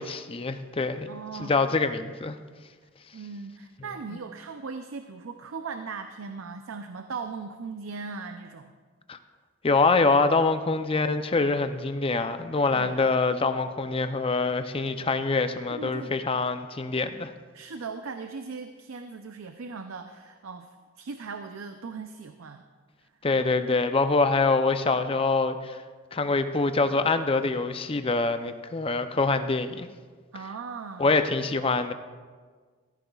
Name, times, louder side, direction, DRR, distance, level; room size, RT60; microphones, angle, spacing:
voice 1, 0.0-1.1 1.4-2.4 9.1-9.2 9.6-17.3 23.2-25.8 26.1-29.9 31.0-31.9, left 3 dB, 25° left, 9 dB, 0.5 m, -25 dB
voice 2, 1.1-1.5 3.1-8.7 12.7-13.0 15.7-16.2 17.5-20.7 21.0-22.6 30.3-31.1, right 4 dB, 80° right, 7 dB, 0.5 m, -38 dB
16.0 x 14.0 x 2.4 m, 1.5 s
head